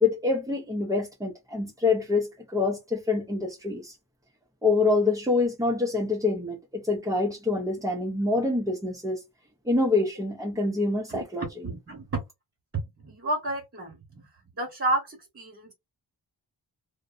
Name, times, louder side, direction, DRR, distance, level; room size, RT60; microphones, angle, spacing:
voice 1, 0.0-3.9 4.6-9.2 9.7-11.5, left 3 dB, 10° right, 0.4 m, -26 dB
voice 2, 11.1-12.2 12.7-14.3 14.5-15.7, right 2 dB, 30° right, 0.9 m, -31 dB
2.6 x 2.0 x 2.3 m
wide cardioid pair, 100°, 46 cm